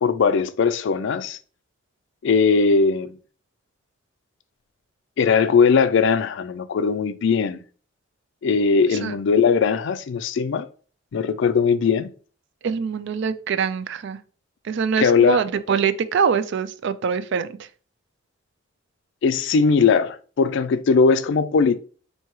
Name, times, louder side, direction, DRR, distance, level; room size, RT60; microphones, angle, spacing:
voice 1, 0.0-1.4 2.2-3.1 5.2-7.6 8.4-10.7 11.1-12.1 15.0-15.4 19.2-21.8, left 5 dB, 65° left, 0.4 m, -19 dB
voice 2, 12.6-14.2 14.6-17.6, right 6 dB, 60° right, 0.4 m, -24 dB
4.5 x 2.7 x 3.1 m
head